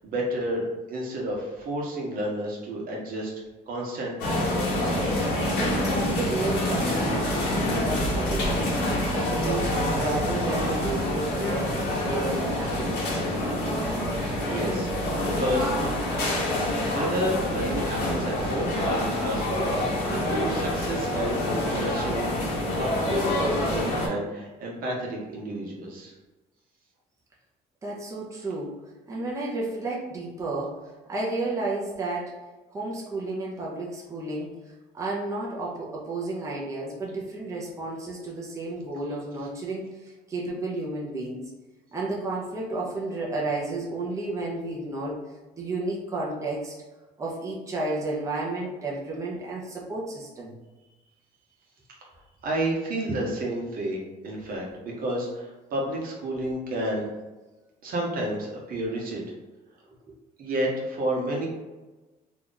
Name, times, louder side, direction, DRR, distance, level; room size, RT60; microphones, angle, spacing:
voice 1, 0.0-3.3 3.7-4.4 14.5-14.9 15.3-15.7 16.9-22.3 22.7-26.1 52.4-57.1 57.8-59.2 60.4-61.5, right 1 dB, 60° right, -2 dB, 1.0 m, -30 dB
sound 1, 4.2-24.1, left 1 dB, 80° left, 1.1 m, -26 dB
voice 2, 5.5-8.7 9.1-13.2 27.8-28.8 29.1-30.7 31.1-32.3 32.7-34.5 34.9-41.4 41.9-45.2 45.6-46.7 47.2-50.6 60.1-60.2, right 2 dB, 20° right, -4 dB, 0.7 m, -32 dB
3.0 x 2.5 x 3.8 m, 1.1 s
cardioid pair, 110°, 17 cm